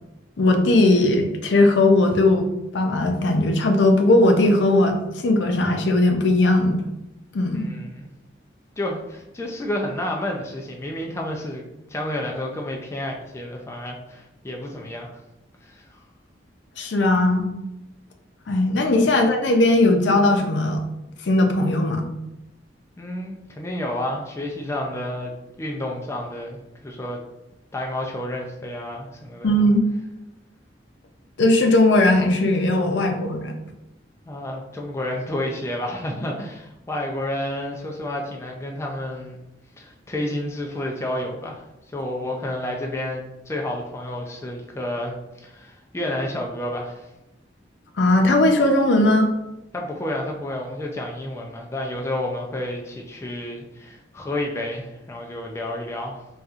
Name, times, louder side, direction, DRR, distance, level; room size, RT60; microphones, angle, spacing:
voice 1, 0.4-2.5 2.7-6.8 7.3-7.7 16.8-17.5 18.5-20.8 21.3-22.0 29.4-29.8 31.4-33.5 48.0-49.3, left 2 dB, 75° left, 4 dB, 0.5 m, -18 dB
voice 2, 7.5-8.1 8.8-11.6 11.9-15.1 15.6-15.9 23.0-25.3 25.6-27.2 27.7-29.5 34.3-39.4 39.8-41.6 41.9-45.1 45.4-47.1 49.7-56.2, left 1 dB, 15° left, 0 dB, 0.3 m, -30 dB
4.1 x 2.3 x 2.4 m, 0.92 s
head